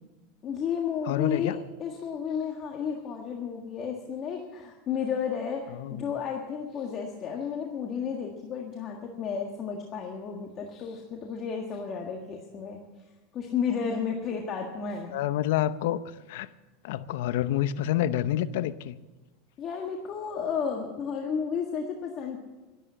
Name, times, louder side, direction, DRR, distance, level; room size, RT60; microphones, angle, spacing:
voice 1, 0.4-12.8 13.3-15.2 19.6-22.4, left 6 dB, 35° left, 1 dB, 1.6 m, -32 dB
voice 2, 1.1-1.6 5.7-6.0 15.1-16.0 16.3-16.5 16.8-19.0, left 12 dB, 75° left, 14 dB, 0.7 m, -28 dB
12.5 x 12.0 x 7.5 m, 1.2 s
supercardioid pair, 135°, 0 cm